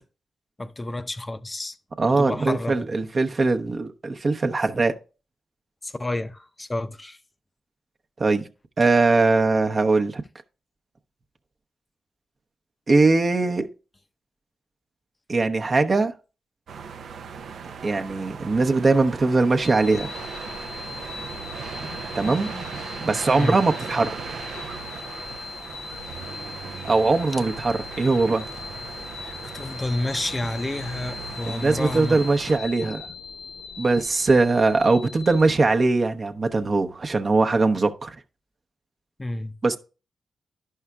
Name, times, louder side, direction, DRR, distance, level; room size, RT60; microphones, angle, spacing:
voice 1, 0.6-1.8 2.2-2.9 5.8-7.2 23.4-23.6 29.2-32.2 39.2-39.5, left 1 dB, 25° left, 0.5 m, -30 dB
voice 2, 2.0-5.0 8.2-8.5 8.8-10.2 12.9-13.7 15.3-16.1 17.8-20.1 22.1-22.5 23.0-24.1 26.8-28.5 31.5-33.1 33.8-38.2 39.6-39.8, right 3 dB, 50° right, 0.8 m, -21 dB
sound 1, 16.7-32.6, right 6 dB, 75° right, 0.5 m, -37 dB
sound 2, 19.6-35.6, left 5 dB, 85° left, 1.0 m, -39 dB
11.0 x 5.6 x 2.4 m
supercardioid pair, 50°, 0 cm